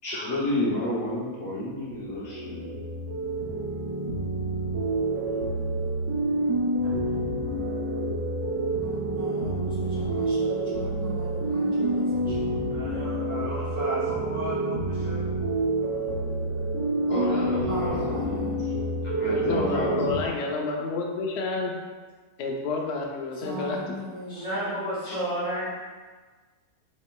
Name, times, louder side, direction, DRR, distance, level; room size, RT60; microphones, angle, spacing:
voice 1, 0.0-2.7 17.1-18.6 19.2-20.2 25.0-25.2, left 1 dB, 55° left, -8 dB, 0.9 m, -30 dB
sound 1, 1.8-20.2, right 2 dB, 75° right, 1.3 m, -28 dB
voice 2, 6.8-7.2 12.7-15.3 24.3-25.8, equal, 40° right, -10 dB, 0.5 m, -33 dB
voice 3, 8.8-12.6 17.7-18.5 23.3-25.4, right 2 dB, 5° left, -10 dB, 0.9 m, -38 dB
voice 4, 19.2-21.7 22.4-23.9, left 4 dB, 85° left, 1 dB, 0.5 m, -30 dB
4.2 x 2.9 x 2.2 m, 1.4 s
omnidirectional pair, 1.7 m